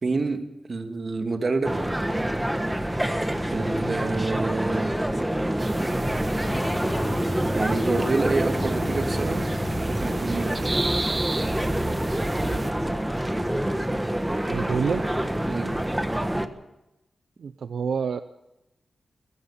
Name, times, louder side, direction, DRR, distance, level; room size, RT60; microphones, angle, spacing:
voice 1, 0.0-0.4 0.7-1.8 3.5-4.9 7.5-9.5 9.9-10.6 15.5-15.7, right 3 dB, 45° right, 6 dB, 2.4 m, -27 dB
sound 1, 1.6-16.5, right 1 dB, 10° right, 1.4 m, -27 dB
Truck, 3.9-9.9, left 2 dB, 20° left, 3.2 m, -37 dB
sound 2, 5.6-12.7, right 2 dB, 25° right, 1.3 m, -33 dB
voice 2, 14.5-15.1 17.4-18.2, right 6 dB, 75° right, 11 dB, 0.7 m, -27 dB
20.0 x 15.5 x 8.5 m, 0.92 s
wide cardioid pair, 95°, 0 cm